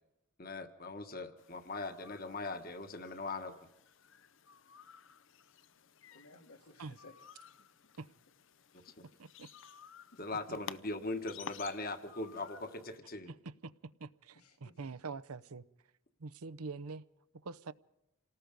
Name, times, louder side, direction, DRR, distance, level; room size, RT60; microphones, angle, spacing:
voice 1, 0.4-3.5 10.2-13.3, left 2 dB, 40° left, 1.4 m, -40 dB
sound 1, 1.4-13.0, left 7 dB, 60° left, 0.7 m, -54 dB
voice 2, 6.1-7.6 8.6-9.0 10.1-10.4 14.3-14.8, left 2 dB, 85° left, 2.6 m, -60 dB
voice 3, 14.0-15.6 16.2-17.1 17.4-17.7, right 4 dB, 90° right, 0.7 m, -44 dB
28.0 x 18.5 x 5.3 m
head